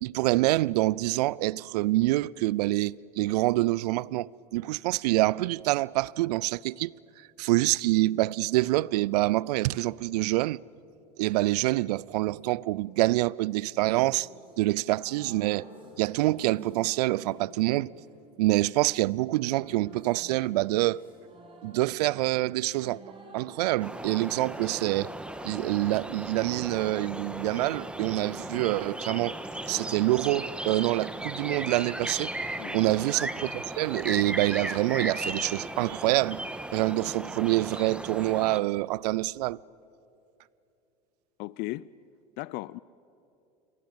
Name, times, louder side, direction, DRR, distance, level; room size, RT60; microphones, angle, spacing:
voice 1, 0.0-6.9 7.4-10.6 11.2-14.3 14.6-15.6 16.0-17.9 18.4-21.0 21.6-23.0 23.3-25.1 25.4-29.3 29.7-32.3 32.7-36.4 36.7-39.6, right 18 dB, 70° right, 0.5 m, -26 dB
sound 1, 13.8-31.6 32.9-33.0, right 1 dB, 25° right, 6.5 m, -51 dB
sound 2, 23.8-38.6, right 1 dB, 5° right, 1.5 m, -37 dB
voice 2, 32.6-33.0 41.4-41.9 42.4-42.8, left 20 dB, 50° left, 0.5 m, -36 dB
28.5 x 23.0 x 8.0 m
hypercardioid pair, 80°, 21 cm